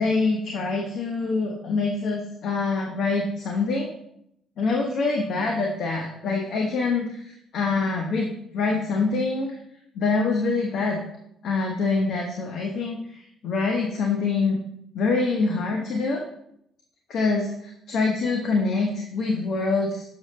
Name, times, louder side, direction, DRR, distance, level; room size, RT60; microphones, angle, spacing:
voice 1, 0.0-3.9 4.6-9.5 9.9-11.0 11.4-13.2 13.4-14.6 14.9-16.2 17.1-20.0, left 3 dB, 65° left, 1 dB, 1.0 m, -25 dB
7.1 x 6.1 x 3.3 m, 0.76 s
cardioid pair, 105°, 0 cm